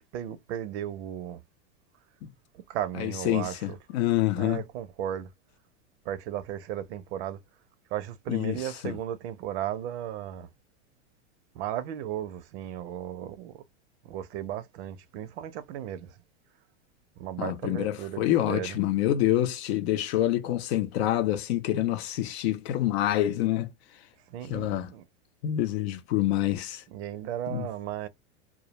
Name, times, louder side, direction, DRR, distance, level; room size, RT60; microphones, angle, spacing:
voice 1, 0.1-1.4 2.5-3.8 4.4-5.3 6.1-7.4 7.9-10.5 11.5-13.6 14.0-16.2 17.2-18.8 24.3-25.0 26.9-28.1, right 11 dB, 65° right, 0.5 m, -35 dB
voice 2, 3.0-4.6 8.3-8.6 8.8-9.0 17.4-23.7 24.5-24.9 25.4-26.8 27.5-27.7, left 13 dB, 60° left, 0.6 m, -27 dB
2.2 x 2.1 x 2.8 m
supercardioid pair, 135°, 35 cm